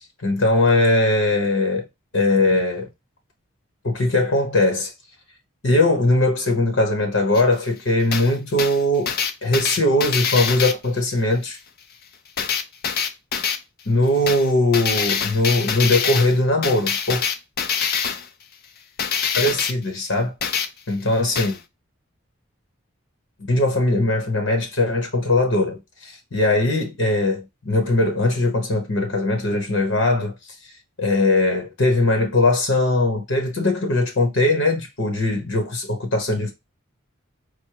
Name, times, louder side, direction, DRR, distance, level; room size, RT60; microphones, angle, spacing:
voice 1, 0.2-1.9 2.1-2.9 3.8-4.9 5.6-9.1 9.4-11.6 13.9-17.2 19.3-20.3 20.9-21.6 23.5-30.3 31.0-36.5, left 2 dB, 70° left, 1.1 m, -20 dB
sound 1, 7.3-7.4 8.1-8.3 8.6-10.7 12.4-13.6 14.3-14.5 14.7-16.4 16.6-18.3 19.0-19.7 20.4-20.7 21.4-21.6, left 6 dB, 45° left, 0.5 m, -24 dB
4.6 x 2.2 x 4.6 m
head